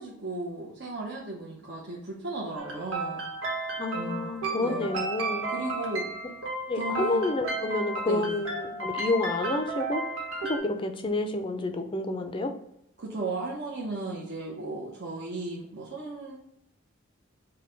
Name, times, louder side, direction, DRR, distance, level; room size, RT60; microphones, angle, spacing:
voice 1, 0.0-3.2 3.9-4.3 4.6-4.9 5.5-6.1 6.7-7.3 8.1-8.4 13.0-16.4, right 2 dB, 55° right, -4 dB, 0.8 m, -35 dB
sound 1, 2.6-10.6, right 2 dB, 90° right, 1.3 m, -33 dB
voice 2, 3.8-5.5 6.7-10.0 10.4-12.5, left 2 dB, 25° left, 6 dB, 0.4 m, -29 dB
5.4 x 2.2 x 3.9 m, 0.77 s
head